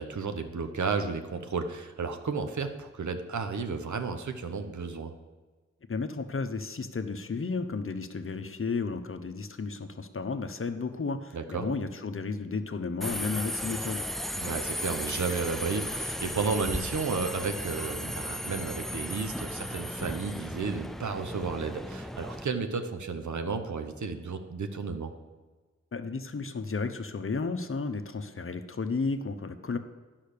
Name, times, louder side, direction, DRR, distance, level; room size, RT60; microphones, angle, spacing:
voice 1, 0.0-5.1 11.3-11.7 14.3-25.1, right 5 dB, 80° right, 7 dB, 0.9 m, -33 dB
voice 2, 5.9-14.0 25.9-29.8, left 4 dB, 45° left, 9 dB, 0.8 m, -33 dB
Subway metro underground, 13.0-22.5, equal, ahead, 0.4 m, -35 dB
10.0 x 5.7 x 6.7 m, 1.3 s
cardioid pair, 55°, 29 cm